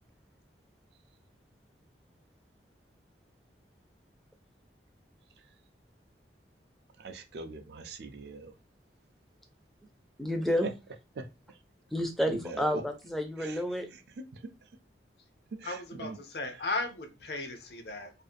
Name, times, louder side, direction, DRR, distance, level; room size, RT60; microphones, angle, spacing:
voice 1, 7.0-8.5 10.6-10.7 11.2-11.6 12.3-12.8 13.4-13.6 13.9-14.7 15.5-16.2 16.5-16.6, right 3 dB, 65° right, 0.4 m, -42 dB
voice 2, 10.2-10.7 11.9-13.9, equal, ahead, 0.4 m, -30 dB
voice 3, 15.6-18.1, left 2 dB, 60° left, 0.5 m, -36 dB
2.5 x 2.4 x 2.4 m
head